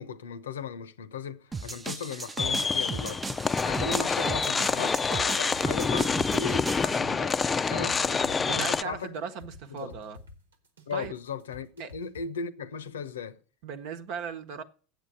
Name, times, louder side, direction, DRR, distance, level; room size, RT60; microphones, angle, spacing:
voice 1, 0.0-9.1 9.7-9.9 10.9-13.4, left 6 dB, 80° left, 0.8 m, -37 dB
sound 1, 1.5-7.0, right 4 dB, 20° right, 0.6 m, -37 dB
sound 2, 2.4-8.8, left 5 dB, 25° left, 0.4 m, -27 dB
sound 3, 4.3-12.3, left 2 dB, 85° right, 1.4 m, -50 dB
voice 2, 8.5-10.2 10.9-11.1 11.8-11.9 13.6-14.6, right 6 dB, 60° right, 1.1 m, -37 dB
8.0 x 7.9 x 8.4 m
hypercardioid pair, 75°, 0 cm